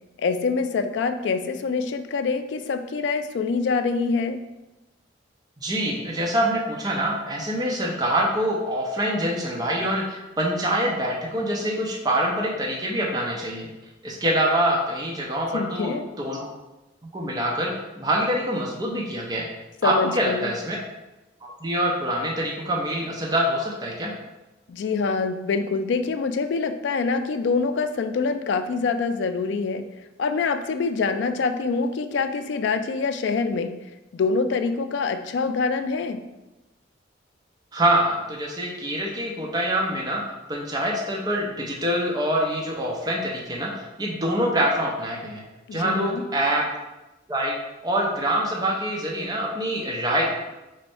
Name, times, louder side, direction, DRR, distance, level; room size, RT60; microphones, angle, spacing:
voice 1, 0.2-4.4 15.5-16.1 19.8-20.5 24.7-29.8 30.2-33.9 34.1-36.2 45.7-46.2, left 4 dB, 65° left, 9 dB, 0.3 m, -25 dB
voice 2, 5.6-13.7 14.0-16.5 17.1-19.5 19.8-20.8 21.6-24.1 37.7-40.2 40.5-45.4 45.7-46.6 47.3-47.5 47.8-50.3, right 1 dB, 20° right, -2 dB, 0.5 m, -25 dB
3.1 x 2.6 x 4.3 m, 1.0 s
head